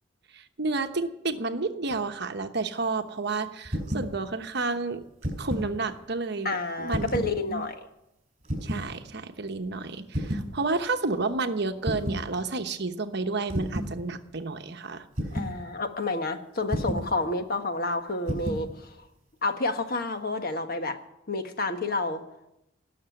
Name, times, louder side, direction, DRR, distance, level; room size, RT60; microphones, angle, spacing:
voice 1, 0.3-5.0 5.4-7.7 8.6-15.0, right 3 dB, 60° right, 7 dB, 1.0 m, -31 dB
sound 1, 3.6-4.1 5.0-5.7 6.9-7.4 8.4-8.9 10.1-10.5 11.8-12.3 13.5-14.0 15.2-15.6 16.7-17.1 18.3-18.7, equal, 35° right, 5.0 m, -30 dB
voice 2, 6.4-7.8 15.3-18.9 19.4-21.0 21.3-22.2, left 2 dB, 50° left, 6 dB, 1.4 m, -29 dB
18.5 x 6.8 x 9.9 m, 0.87 s
head